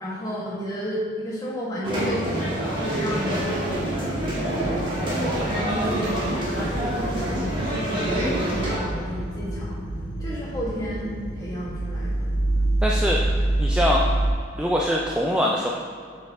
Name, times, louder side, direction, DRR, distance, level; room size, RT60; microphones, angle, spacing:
voice 1, 0.0-4.2 5.0-6.8 7.1-9.8 10.2-12.3, equal, 20° left, -7 dB, 1.6 m, -32 dB
sound 1, 1.8-8.8, right 1 dB, 25° right, 1.5 m, -26 dB
sound 2, 4.0-14.3, right 1 dB, 85° left, 0.8 m, -28 dB
voice 2, 12.8-13.3 13.6-14.0 14.6-15.7, equal, 5° right, -2 dB, 0.3 m, -23 dB
7.7 x 5.3 x 3.6 m, 2.2 s
head